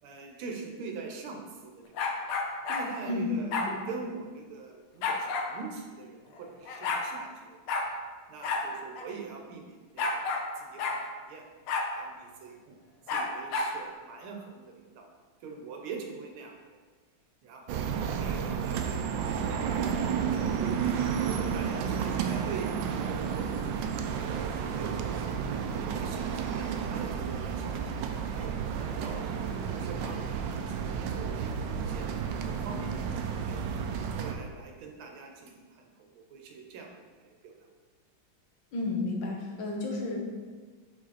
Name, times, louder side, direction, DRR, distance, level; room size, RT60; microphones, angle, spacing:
voice 1, 0.0-2.2 2.7-3.5 3.9-7.6 8.3-11.5 11.9-12.8 13.1-15.1 15.4-16.8 17.4-20.6 21.2-22.7 23.1-24.3 24.6-25.3 25.9-28.0 28.3-29.3 29.7-32.9 33.4-37.5, right 4 dB, 90° right, 2 dB, 1.7 m, -44 dB
sound 1, 1.9-2.9 3.5-3.7 5.0-5.5 6.4-6.5 6.7-7.1 7.7-7.9 8.4-8.7 9.0-9.1 10.0-10.5 10.8-11.0 11.7-11.9 13.1-13.7, left 4 dB, 90° left, 1.6 m, -30 dB
sound 2, 17.7-34.4, right 7 dB, 75° right, 1.2 m, -31 dB
voice 2, 38.7-40.2, left 2 dB, 65° left, -1 dB, 1.7 m, -32 dB
5.1 x 5.0 x 4.1 m, 1.4 s
omnidirectional pair, 2.3 m